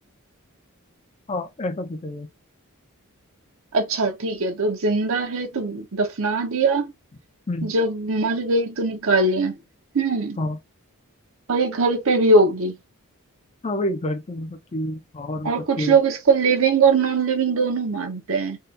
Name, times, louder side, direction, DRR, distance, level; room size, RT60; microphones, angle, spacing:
voice 1, 1.3-2.3 7.5-7.7 10.4-10.6 13.6-16.0, left 1 dB, 30° left, 0.5 m, -28 dB
voice 2, 3.7-6.9 7.6-9.5 9.9-10.4 11.5-12.7 15.4-18.6, right 3 dB, 60° right, 0.7 m, -21 dB
3.7 x 2.3 x 2.6 m
head